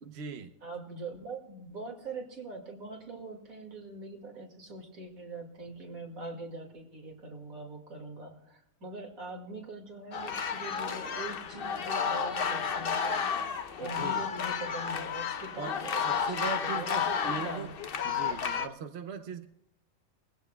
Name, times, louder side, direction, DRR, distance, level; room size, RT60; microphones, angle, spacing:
voice 1, 0.0-0.5 13.8-14.2 15.6-17.7 18.0-19.5, right 5 dB, 55° right, 7 dB, 1.0 m, -39 dB
voice 2, 0.6-13.3 13.8-17.7, right 2 dB, 75° right, 2 dB, 2.7 m, -43 dB
sound 1, 10.1-18.7, left 6 dB, 50° left, 0.8 m, -32 dB
20.5 x 16.0 x 2.3 m, 0.82 s
omnidirectional pair, 1.5 m